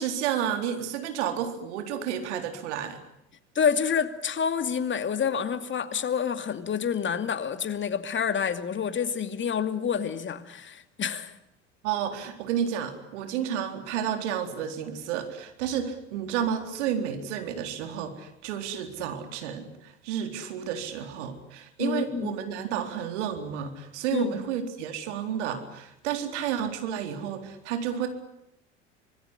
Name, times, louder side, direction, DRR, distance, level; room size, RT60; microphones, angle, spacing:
voice 1, 0.0-3.0 11.8-28.1, right 9 dB, 70° right, 4.0 m, -31 dB
voice 2, 3.5-11.3 21.8-22.3 24.1-24.3, left 7 dB, 30° left, 2.6 m, -28 dB
26.0 x 21.0 x 9.9 m
hypercardioid pair, 75°, 36 cm